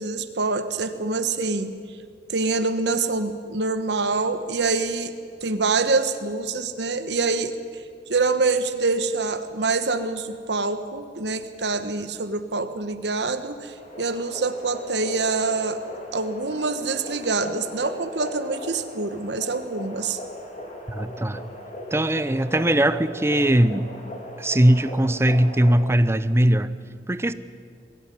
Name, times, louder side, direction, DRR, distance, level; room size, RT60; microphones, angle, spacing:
voice 1, 0.0-1.7 2.3-5.1 5.4-7.5 8.1-15.8 16.1-20.2, right 3 dB, 75° right, 10 dB, 1.3 m, -25 dB
sound 1, 13.8-25.9, equal, 40° left, 3.3 m, -38 dB
voice 2, 20.9-21.4 21.9-23.9 24.4-26.7 27.1-27.3, right 1 dB, 15° right, 14 dB, 0.6 m, -20 dB
22.0 x 16.0 x 9.3 m, 2.2 s
head